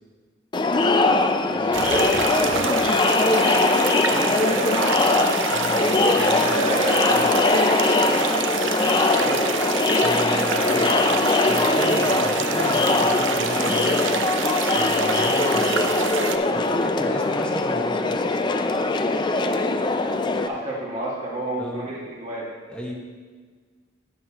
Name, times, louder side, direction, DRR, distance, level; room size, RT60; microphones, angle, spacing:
Crowd, 0.5-20.5, left 3 dB, 25° left, 0.4 m, -21 dB
voice 1, 1.4-3.0 4.0-5.2 6.4-7.5 9.1-9.4 10.5-10.9 15.5-15.7 20.4-22.5, right 1 dB, 35° right, -5 dB, 2.0 m, -30 dB
sound 1, 1.7-16.4, right 6 dB, 80° right, 0.6 m, -27 dB
voice 2, 5.5-6.6 7.1-7.3 10.0-10.9 11.5-14.1 14.7-15.8 16.5-18.3 21.6-21.9 22.7-22.9, equal, 5° left, -2 dB, 1.3 m, -34 dB
11.0 x 9.5 x 3.0 m, 1.5 s
head